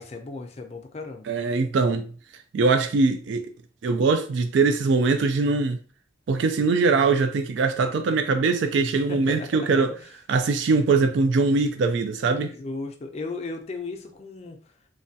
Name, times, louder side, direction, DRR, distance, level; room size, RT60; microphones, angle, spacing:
voice 1, 0.0-1.3 9.1-10.1 12.3-14.6, left 3 dB, 35° left, 0.4 m, -36 dB
voice 2, 1.3-2.1 2.5-3.5 3.8-5.8 6.3-9.9 10.3-12.5, right 4 dB, 65° right, 0.3 m, -22 dB
3.2 x 2.2 x 2.6 m
head